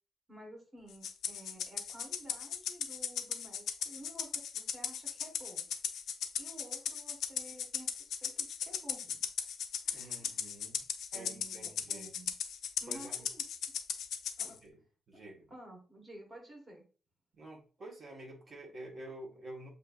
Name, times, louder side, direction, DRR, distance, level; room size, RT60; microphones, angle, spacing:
voice 1, 0.3-5.7 6.4-9.2 9.8-10.5 11.1-12.3 12.8-13.4 14.4-14.6 15.5-16.8, right 1 dB, 20° right, 0 dB, 1.4 m, -52 dB
Rattle (instrument), 1.0-14.5, left 8 dB, 85° left, 0.5 m, -37 dB
voice 2, 9.9-10.8 11.1-12.1 12.9-13.3 14.5-14.8 15.1-15.5 17.4-19.7, right 1 dB, 35° right, -2 dB, 1.4 m, -49 dB
6.6 x 2.7 x 2.4 m, 0.38 s
wide cardioid pair, 155°, 0 cm